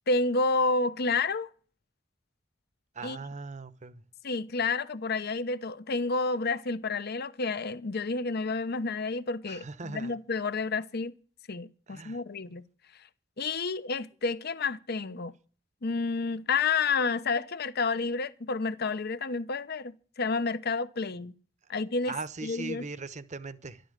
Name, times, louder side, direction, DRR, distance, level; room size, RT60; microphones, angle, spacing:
voice 1, 0.1-1.5 3.0-3.2 4.2-11.1 11.5-12.6 13.4-15.3 15.8-21.3 21.7-22.2 22.4-22.9, left 3 dB, 55° left, 0.8 m, -30 dB
voice 2, 3.0-4.0 9.5-10.2 11.9-12.2 22.1-23.8, right 3 dB, 40° right, 0.9 m, -39 dB
13.0 x 12.0 x 6.7 m
head